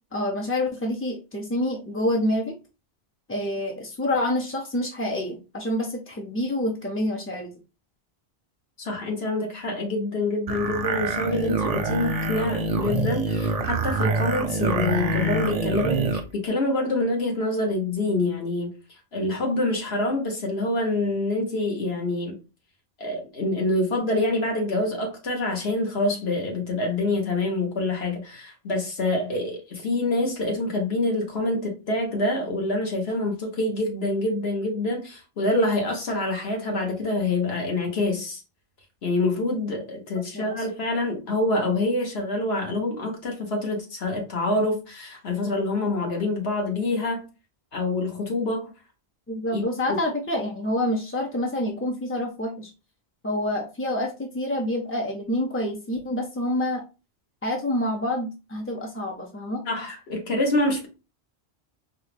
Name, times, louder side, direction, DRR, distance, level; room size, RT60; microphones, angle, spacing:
voice 1, 0.1-2.5 3.3-7.5 40.3-40.7 49.3-52.7 53.2-56.8 57.4-59.6, left 1 dB, 20° left, 0.3 m, -27 dB
voice 2, 8.8-18.7 19.1-22.3 23.0-38.4 39.0-47.2 47.7-48.7 49.5-50.0 59.7-60.9, left 2 dB, 75° left, 1.4 m, -26 dB
sound 1, 10.5-16.3, right 2 dB, 45° right, 0.5 m, -26 dB
4.2 x 2.3 x 3.3 m
omnidirectional pair, 1.1 m